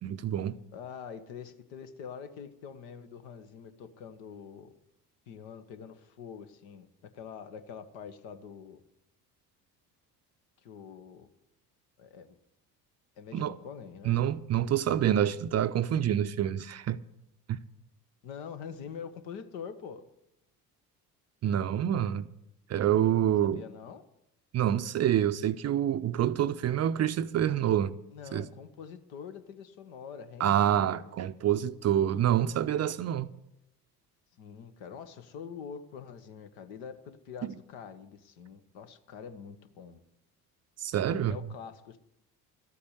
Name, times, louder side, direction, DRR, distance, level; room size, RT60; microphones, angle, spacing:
voice 1, 0.0-0.5 13.3-13.6 14.1-17.0 17.5-17.6 21.4-22.3 22.7-23.6 24.5-27.9 28.3-28.5 30.4-33.3 40.8-41.4, right 10 dB, 35° right, 0.6 m, -27 dB
voice 2, 0.7-4.7 5.3-6.9 7.1-8.8 10.6-11.3 12.0-12.4 13.1-14.2 18.2-20.0 23.4-24.0 28.1-31.1 34.4-40.0 41.1-42.0, left 7 dB, 60° left, 1.3 m, -45 dB
13.5 x 8.4 x 8.0 m
figure-of-eight pair, 55°, 48 cm